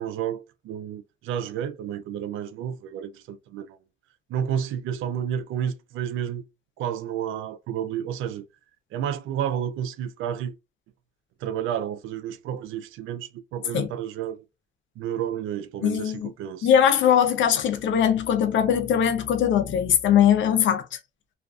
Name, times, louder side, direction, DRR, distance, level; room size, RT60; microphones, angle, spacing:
voice 1, 0.0-3.8 4.3-6.5 6.8-8.4 8.9-10.5 11.4-14.4 15.0-16.7, right 9 dB, 85° right, 0.4 m, -31 dB
voice 2, 15.8-16.3 16.6-20.9, left 9 dB, 70° left, 0.6 m, -21 dB
2.4 x 2.3 x 2.3 m
cardioid pair, 90°, 20 cm